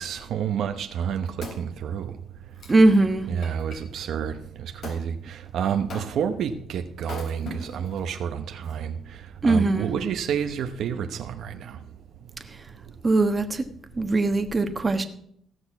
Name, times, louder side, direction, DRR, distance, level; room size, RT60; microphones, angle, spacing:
voice 1, 0.0-2.1 3.3-9.0 9.4-11.8, right 8 dB, 75° right, 0.8 m, -29 dB
Wood, 1.0-3.8 4.8-5.1 5.9-6.4 7.0-8.0 8.6-8.7, left 2 dB, 65° left, 3.5 m, -40 dB
voice 2, 2.7-3.3 9.4-9.9 13.0-13.6 14.0-15.0, right 2 dB, 25° right, 1.2 m, -20 dB
16.0 x 6.5 x 5.9 m
cardioid pair, 90°, 0 cm